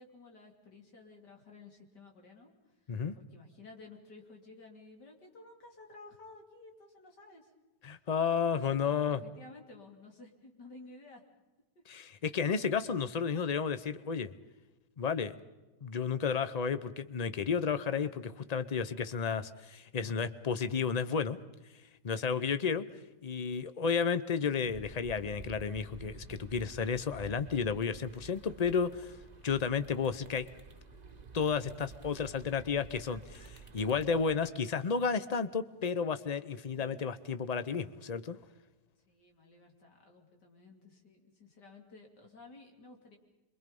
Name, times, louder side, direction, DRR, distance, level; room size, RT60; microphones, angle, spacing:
voice 1, 0.0-2.9 3.2-7.5 8.7-11.2 12.0-12.5 39.1-43.2, left 3 dB, 75° left, 1 dB, 3.9 m, -54 dB
voice 2, 7.8-9.2 11.9-14.3 15.0-15.3 15.8-21.4 22.0-22.9 23.2-29.1 29.4-30.5 31.3-38.4, left 6 dB, 40° left, 13 dB, 0.6 m, -32 dB
sound 1, 24.6-34.4, right 4 dB, 30° right, 1.2 m, -51 dB
27.5 x 23.5 x 5.4 m, 1.1 s
omnidirectional pair, 1.8 m